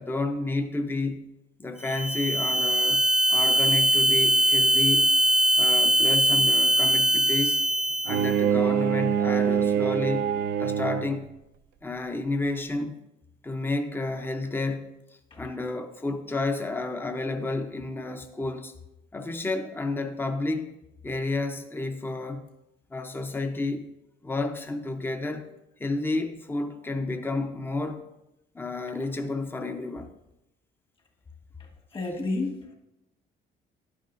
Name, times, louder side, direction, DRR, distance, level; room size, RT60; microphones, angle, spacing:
voice 1, 0.0-1.3 1.6-5.2 5.6-7.6 8.0-11.3 11.8-13.0 13.4-15.0 15.4-18.7 19.1-20.7 21.0-22.5 22.9-23.9 24.2-25.5 25.8-28.0 28.5-30.1, left 2 dB, 10° left, 0.7 m, -31 dB
sound 1, 1.8-8.4, right 1 dB, 5° right, 0.3 m, -22 dB
Bowed string instrument, 8.1-11.3, right 8 dB, 75° right, 0.5 m, -25 dB
voice 2, 31.9-32.7, left 2 dB, 30° left, 1.6 m, -30 dB
11.0 x 9.3 x 2.6 m
cardioid pair, 110°, 17 cm